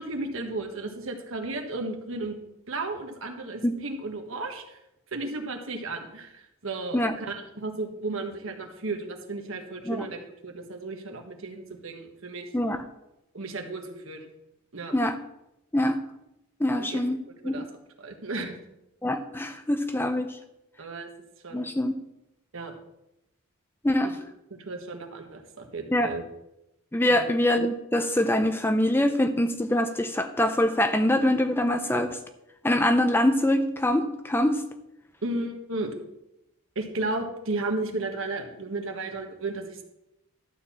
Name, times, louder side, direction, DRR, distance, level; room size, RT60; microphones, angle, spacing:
voice 1, 0.0-2.4 2.7-4.8 5.1-12.5 13.3-14.3 14.7-14.9 16.8-17.0 17.4-17.6 18.0-18.6 20.8-21.1 21.4-21.7 22.5-22.8 24.5-26.2 27.1-27.3 35.2-35.9 36.7-39.8, right 2 dB, 65° right, 4 dB, 1.4 m, -34 dB
voice 2, 12.5-12.8 14.9-15.2 15.7-16.0 16.6-17.2 17.4-17.7 19.0-20.4 21.5-22.0 23.8-24.2 25.9-26.1 26.9-32.2 32.6-34.6, left 1 dB, 10° left, 8 dB, 0.5 m, -24 dB
12.0 x 4.4 x 7.3 m, 0.88 s
head